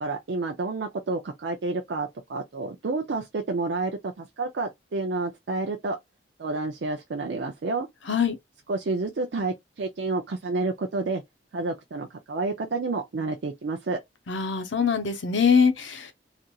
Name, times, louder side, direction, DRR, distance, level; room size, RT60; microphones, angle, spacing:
voice 1, 0.0-6.0 6.4-7.9 8.7-11.2 11.5-14.0, right 3 dB, 60° right, 0.4 m, -29 dB
voice 2, 14.3-16.1, left 6 dB, 70° left, 0.7 m, -23 dB
2.8 x 2.5 x 2.3 m
head